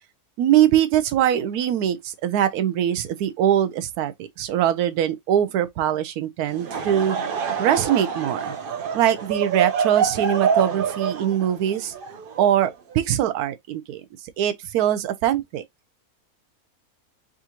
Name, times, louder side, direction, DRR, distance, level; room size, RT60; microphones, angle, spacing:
voice 1, 0.4-7.2 7.6-8.5 8.9-11.9 12.4-14.0 14.4-15.6, right 11 dB, 85° right, 1.1 m, -22 dB
Laughter / Crowd, 6.5-12.9, right 7 dB, 70° right, 0.5 m, -26 dB
4.9 x 2.5 x 2.9 m
omnidirectional pair, 1.6 m